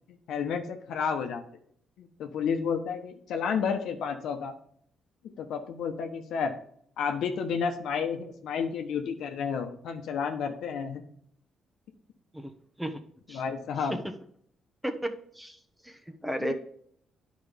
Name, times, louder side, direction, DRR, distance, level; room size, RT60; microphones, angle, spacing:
voice 1, 0.1-1.4 2.0-4.5 5.4-6.5 7.0-11.0 13.3-14.0 16.4-16.5, left 6 dB, 80° left, 5 dB, 1.1 m, -31 dB
voice 2, 14.8-15.6 15.8-16.5, equal, 5° right, 6 dB, 1.0 m, -34 dB
10.0 x 5.1 x 3.5 m, 0.65 s
cardioid pair, 90°, 0 cm